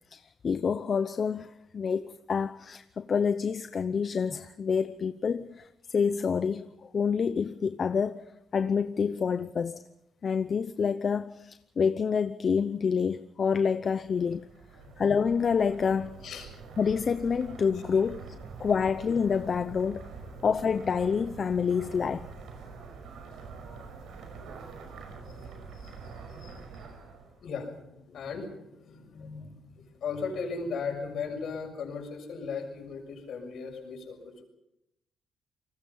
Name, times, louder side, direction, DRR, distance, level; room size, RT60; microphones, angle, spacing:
voice 1, 0.1-8.2 8.5-9.8 10.2-14.5 15.0-16.2 16.8-18.3 18.6-20.1 20.4-22.3, left 6 dB, 45° left, 0.8 m, -28 dB
sound 1, 14.0-27.4, right 5 dB, 75° right, 5.9 m, -45 dB
voice 2, 25.2-26.9 27.4-34.4, left 5 dB, 65° left, 6.7 m, -38 dB
29.0 x 20.0 x 5.7 m
cardioid pair, 90°, 0 cm